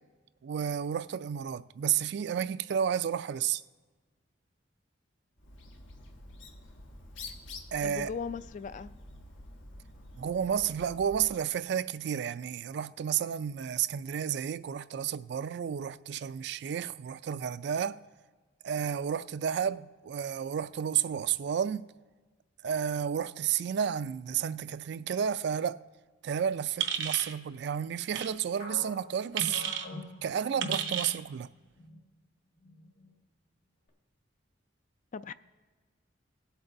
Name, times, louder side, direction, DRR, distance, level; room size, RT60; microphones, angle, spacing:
voice 1, 0.4-3.6 7.7-8.1 10.2-18.0 18.6-21.9 22.6-25.8 26.2-29.6 30.2-31.5, right 8 dB, 60° right, 0.3 m, -31 dB
Bird, 5.4-11.4, left 2 dB, 85° left, 1.2 m, -48 dB
voice 2, 7.8-8.9 35.1-35.3, left 5 dB, 40° left, 0.3 m, -38 dB
sound 1, 26.8-27.3 28.1-28.3 29.4-29.9 30.6-31.2, right 8 dB, 85° right, 0.8 m, -33 dB
sound 2, 28.6-31.4 31.8-32.0 32.6-33.1, left 1 dB, 60° left, 2.0 m, -43 dB
18.5 x 8.0 x 2.6 m
head